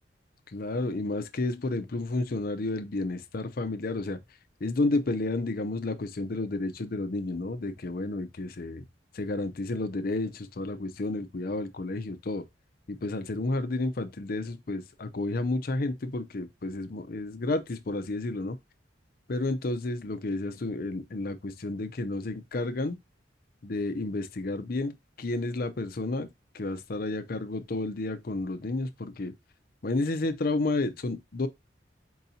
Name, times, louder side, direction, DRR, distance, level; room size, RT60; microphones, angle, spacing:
voice 1, 0.5-4.2 4.6-8.8 9.2-12.4 12.9-18.6 19.3-23.0 23.6-24.9 25.2-26.3 26.5-29.3 29.8-31.5, left 2 dB, 50° left, 0.6 m, -31 dB
4.6 x 2.8 x 4.1 m
head